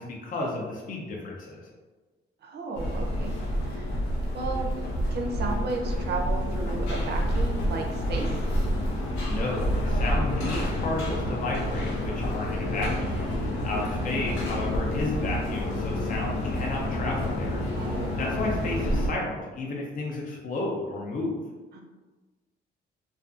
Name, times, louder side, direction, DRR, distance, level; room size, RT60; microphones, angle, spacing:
voice 1, 0.0-1.6 9.2-21.4, left 2 dB, 45° left, -2 dB, 0.5 m, -33 dB
voice 2, 2.4-3.3 3.6-4.0 4.3-8.4 13.7-14.1 17.8-18.1 21.7-21.8, right 3 dB, 55° right, 1 dB, 0.5 m, -34 dB
sound 1, 2.7-19.1, equal, 90° left, 0.6 m, -28 dB
2.4 x 2.2 x 2.4 m, 1.3 s
cardioid pair, 90°, 20 cm